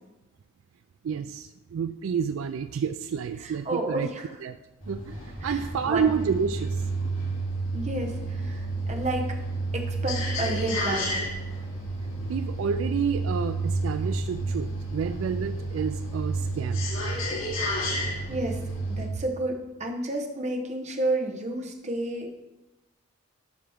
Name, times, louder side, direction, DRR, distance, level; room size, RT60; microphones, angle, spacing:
voice 1, 1.0-4.1 4.4-4.6 4.9-6.8 12.3-16.9, right 6 dB, 70° right, 10 dB, 0.3 m, -29 dB
voice 2, 3.4-4.3 5.4-6.2 7.7-9.4 9.7-11.3 18.3-18.6 18.9-22.4, right 1 dB, 35° right, 2 dB, 1.0 m, -31 dB
sound 1, 4.8-19.1, right 2 dB, 75° left, 2.9 m, -30 dB
12.0 x 5.0 x 3.5 m, 1.0 s
head